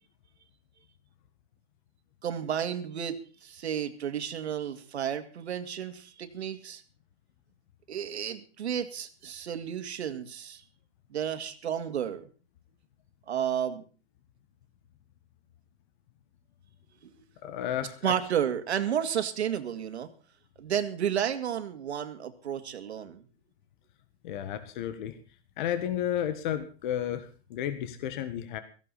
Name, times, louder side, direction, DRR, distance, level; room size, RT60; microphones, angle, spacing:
voice 1, 2.2-6.8 7.9-10.6 11.1-12.3 13.3-13.8 17.0-17.1 18.0-20.1 20.6-23.2, right 9 dB, 85° right, 8 dB, 2.4 m, -32 dB
voice 2, 17.4-18.0 24.2-25.2 25.6-28.6, left 10 dB, 50° left, 10 dB, 1.6 m, -32 dB
16.5 x 15.5 x 4.2 m, 0.37 s
hypercardioid pair, 150°, 32 cm